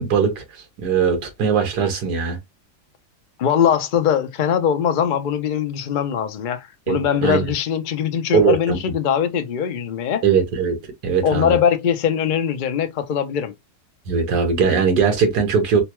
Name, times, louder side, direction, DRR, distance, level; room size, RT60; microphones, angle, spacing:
voice 1, 0.0-2.4 6.9-7.4 8.3-8.8 10.2-10.8 11.0-11.6 14.1-15.8, right 6 dB, 75° right, 1.6 m, -20 dB
voice 2, 3.4-10.2 11.2-13.5, left 8 dB, 90° left, 0.4 m, -21 dB
3.9 x 2.3 x 2.9 m
omnidirectional pair, 1.7 m